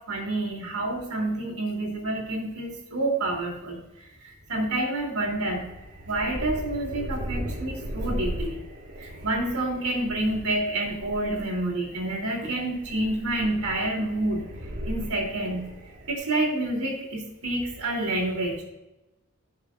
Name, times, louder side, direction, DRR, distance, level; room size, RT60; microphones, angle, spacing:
voice 1, 0.1-3.8 4.2-5.7 6.0-8.6 9.0-14.4 14.8-15.7 16.1-18.6, right 2 dB, 85° right, 0 dB, 3.0 m, -28 dB
sound 1, 5.2-16.1, equal, 50° right, 1.7 m, -37 dB
16.5 x 6.6 x 2.5 m, 0.99 s
head